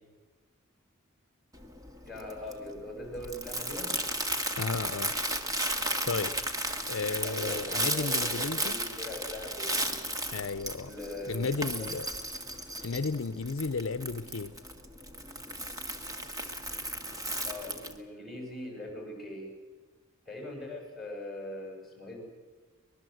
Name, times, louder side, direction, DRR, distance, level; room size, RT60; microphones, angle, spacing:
Crumpling crinkling, 1.5-18.0, right 1 dB, 15° right, 1.7 m, -35 dB
voice 1, 2.1-4.0 7.2-9.8 10.9-11.9 17.4-19.5 20.3-22.2, left 1 dB, ahead, 1 dB, 7.1 m, -41 dB
voice 2, 4.6-5.1 6.0-6.3 6.9-8.7 10.3-10.9 11.3-12.1 12.8-14.5, left 4 dB, 65° left, 13 dB, 0.6 m, -33 dB
24.0 x 20.5 x 7.9 m, 1.4 s
head